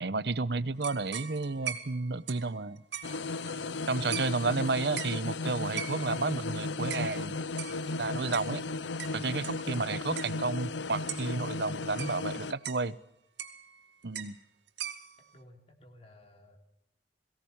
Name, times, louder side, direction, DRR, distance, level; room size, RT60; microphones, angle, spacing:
voice 1, 0.0-2.8 3.9-7.3 8.0-8.6 9.1-13.0 14.0-14.3, right 3 dB, 70° right, 17 dB, 0.9 m, -32 dB
sound 1, 0.8-3.8 4.1-4.6 4.9-5.3 5.8-6.3 6.9-7.1 7.6-9.9 10.2-10.4 10.7-10.8 11.1-11.4 12.0-12.9 13.4-13.8 14.1-14.4 14.7-15.3, right 9 dB, 85° right, 2.2 m, -41 dB
sound 2, 3.0-12.5, left 3 dB, 90° left, 0.7 m, -35 dB
voice 2, 15.3-16.6, left 1 dB, 35° left, 4 dB, 3.6 m, -57 dB
22.5 x 17.0 x 7.3 m, 0.82 s
head